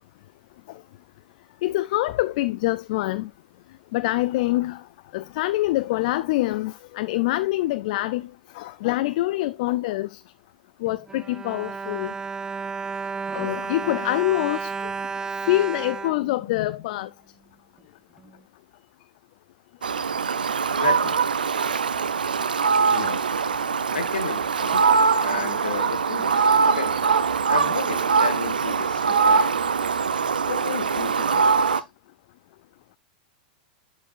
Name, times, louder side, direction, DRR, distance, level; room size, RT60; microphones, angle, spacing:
voice 1, 1.6-3.3 3.9-4.8 5.1-8.3 8.6-10.2 10.8-12.1 13.3-14.7 15.5-17.1, left 17 dB, 60° left, 0.4 m, -25 dB
Bowed string instrument, 10.9-17.1 17.8-17.9 18.2-18.3, right 5 dB, 15° right, 0.3 m, -33 dB
Fowl, 19.8-31.8, right 5 dB, 85° right, 0.6 m, -22 dB
voice 2, 20.7-21.2 22.8-23.4 23.9-24.9 25.2-27.0 27.5-29.6 30.5-31.8, left 6 dB, 85° left, 1.5 m, -33 dB
10.5 x 4.7 x 2.4 m
hypercardioid pair, 100°, 5 cm